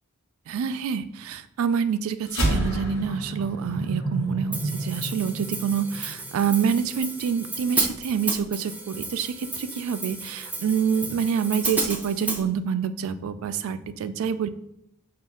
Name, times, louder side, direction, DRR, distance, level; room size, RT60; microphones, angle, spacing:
voice 1, 0.5-14.5, right 7 dB, 70° right, 12 dB, 0.3 m, -27 dB
sound 1, 2.3-6.9, right 1 dB, 75° left, 1.5 m, -30 dB
Hi-hat, 4.5-12.4, right 2 dB, 5° right, 0.5 m, -32 dB
5.1 x 2.4 x 3.6 m, 0.83 s
head